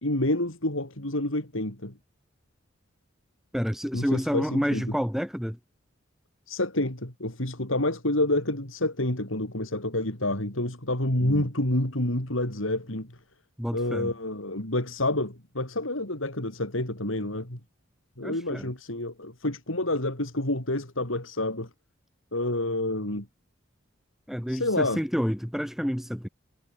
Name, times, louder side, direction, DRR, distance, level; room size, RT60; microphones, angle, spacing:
voice 1, 0.0-1.9 3.9-4.8 6.5-13.1 13.7-17.6 18.2-21.7 22.3-23.3 24.5-25.0, left 1 dB, 80° left, 5.0 m, -28 dB
voice 2, 3.5-5.6 11.2-11.5 13.6-14.1 18.2-18.7 24.3-26.3, equal, ahead, 4.7 m, -29 dB
head